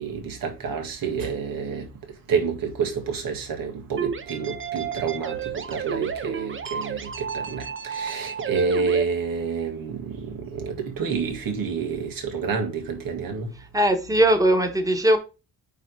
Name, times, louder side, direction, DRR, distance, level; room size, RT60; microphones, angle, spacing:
voice 1, 0.0-1.9 2.3-13.5, right 5 dB, 90° right, 2.0 m, -28 dB
sound 1, 4.0-9.0, right 7 dB, 35° right, 0.8 m, -32 dB
voice 2, 13.7-15.2, right 1 dB, 10° right, 1.2 m, -19 dB
9.1 x 3.5 x 4.6 m
wide cardioid pair, 120°, 33 cm